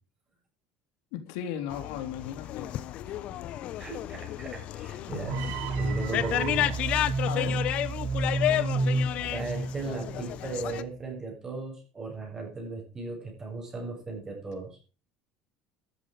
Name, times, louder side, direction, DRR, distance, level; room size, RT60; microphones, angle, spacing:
voice 1, 1.1-2.7 7.3-7.6, left 9 dB, 85° left, 7 dB, 3.5 m, -36 dB
sound 1, 1.7-10.8, left 13 dB, 50° left, 1.1 m, -32 dB
voice 2, 3.8-5.4 5.8-6.8 9.3-14.8, right 3 dB, 20° right, 1 dB, 7.3 m, -37 dB
sound 2, 5.3-10.4, right 2 dB, 60° right, 3.0 m, -30 dB
13.0 x 12.0 x 5.1 m, 0.37 s
cardioid pair, 145°, 3 cm